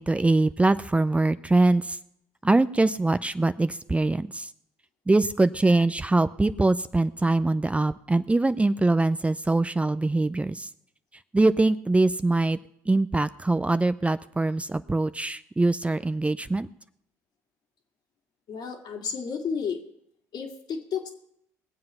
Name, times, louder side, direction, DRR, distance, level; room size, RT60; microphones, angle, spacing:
voice 1, 0.0-2.0 2.4-4.5 5.1-10.7 11.3-12.6 12.9-16.7, right 2 dB, 15° right, 13 dB, 0.5 m, -23 dB
voice 2, 18.5-19.8 20.3-21.1, left 6 dB, 60° left, 2 dB, 2.4 m, -32 dB
20.5 x 7.7 x 5.6 m, 0.73 s
hypercardioid pair, 55°, 8 cm